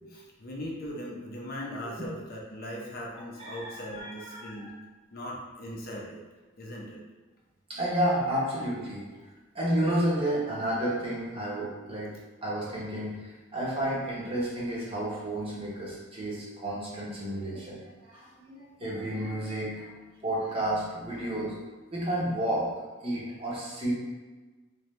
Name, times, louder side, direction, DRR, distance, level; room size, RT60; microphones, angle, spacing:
voice 1, 0.1-4.7 5.1-6.2 6.6-7.0, equal, 50° left, -3 dB, 0.7 m, -39 dB
voice 2, 3.4-4.7 7.7-9.1 9.5-12.1 12.4-19.9 20.2-21.5 21.9-22.7 23.0-23.9, right 1 dB, 30° right, -6 dB, 1.1 m, -31 dB
3.4 x 3.1 x 3.2 m, 1.2 s
head